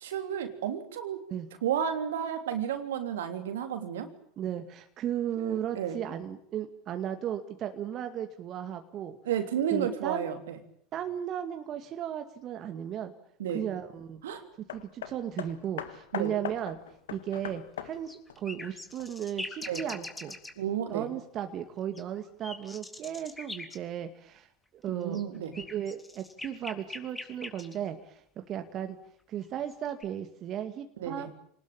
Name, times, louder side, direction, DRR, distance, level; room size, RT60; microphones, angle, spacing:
voice 1, 0.0-1.2 1.6-4.1 5.4-6.0 9.2-10.6 13.4-13.6 14.2-14.4 16.1-16.3 19.6-19.8 20.6-21.1 24.9-25.5 31.0-31.3, right 9 dB, 75° right, 8 dB, 3.3 m, -32 dB
voice 2, 4.4-9.2 9.7-10.3 10.9-13.1 13.5-14.2 14.7-16.8 17.1-20.4 20.9-24.5 24.7-25.2 25.5-29.0 29.3-31.3, right 10 dB, 40° right, 7 dB, 2.1 m, -35 dB
Hammer, 14.7-19.4 20.3-20.4, left 10 dB, 75° left, 1.7 m, -41 dB
sound 1, 17.9-20.5 21.9-23.8 25.0-27.8 29.4-30.0, left 2 dB, 10° left, 3.5 m, -41 dB
28.0 x 19.5 x 8.9 m, 0.66 s
hypercardioid pair, 80°, 0 cm